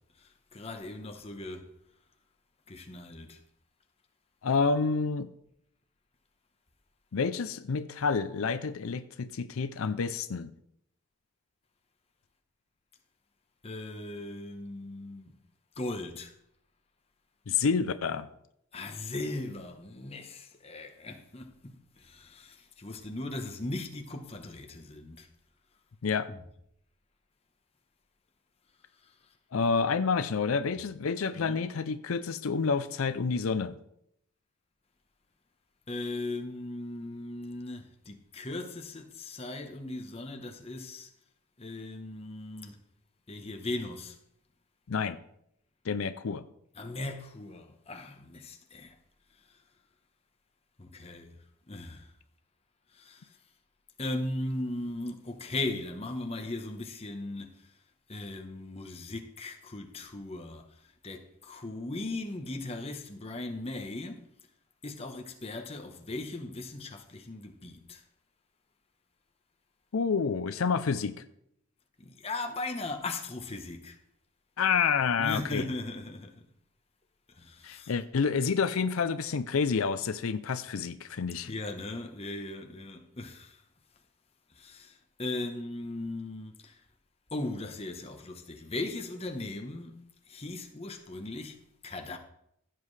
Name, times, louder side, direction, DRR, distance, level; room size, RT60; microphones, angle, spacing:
voice 1, 0.2-1.7 2.7-3.4 13.6-15.3 15.8-16.3 18.7-25.3 26.3-26.4 29.0-29.1 31.3-31.6 35.9-41.1 41.6-42.8 43.3-44.2 46.7-49.0 49.5-49.6 50.8-51.4 51.7-52.1 52.9-53.4 54.0-57.7 58.1-64.3 64.8-68.0 72.0-74.0 75.2-76.4 77.3-77.9 81.5-83.6 84.5-86.8 87.3-92.2, left 2 dB, 30° left, 1.0 m, -38 dB
voice 2, 4.4-5.3 7.1-10.5 17.5-18.3 26.0-26.3 29.5-33.8 44.9-45.2 45.9-46.4 69.9-71.2 74.6-75.6 77.6-81.5, left 5 dB, 80° left, 0.5 m, -29 dB
15.5 x 7.5 x 3.3 m
head